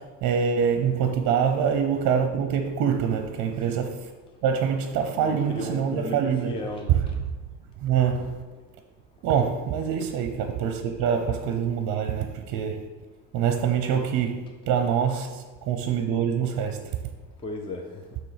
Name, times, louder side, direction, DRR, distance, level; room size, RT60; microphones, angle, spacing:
voice 1, 0.0-4.0 4.4-6.6 6.9-7.0 7.8-8.4 9.2-12.9 13.3-16.9, right 7 dB, 55° right, 0.6 m, -25 dB
voice 2, 5.1-7.1 17.4-18.2, left 2 dB, 15° left, 0.5 m, -36 dB
7.3 x 3.0 x 5.7 m
cardioid pair, 150°, 34 cm